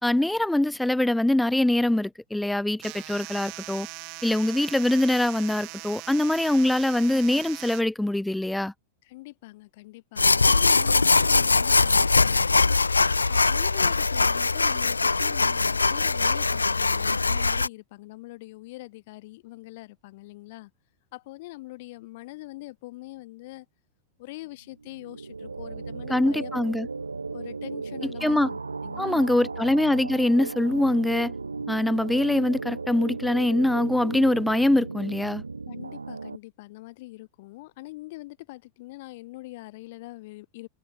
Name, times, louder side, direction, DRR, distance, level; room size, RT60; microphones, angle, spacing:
voice 1, 0.0-3.9 4.2-8.7 26.1-26.9 28.2-28.5 29.0-31.3 31.7-35.4, left 1 dB, 5° left, 1.2 m, -23 dB
sound 1, 2.8-7.8, right 34 dB, 45° right, 1.9 m, -41 dB
voice 2, 9.0-12.8 13.3-20.7 21.1-23.7 24.2-26.5 27.3-29.6 35.7-40.7, left 20 dB, 50° left, 3.8 m, -43 dB
sound 2, 10.2-17.7, left 3 dB, 80° left, 0.4 m, -21 dB
sound 3, 24.8-36.4, right 4 dB, 80° right, 3.3 m, -35 dB
figure-of-eight pair, 90°, 0 cm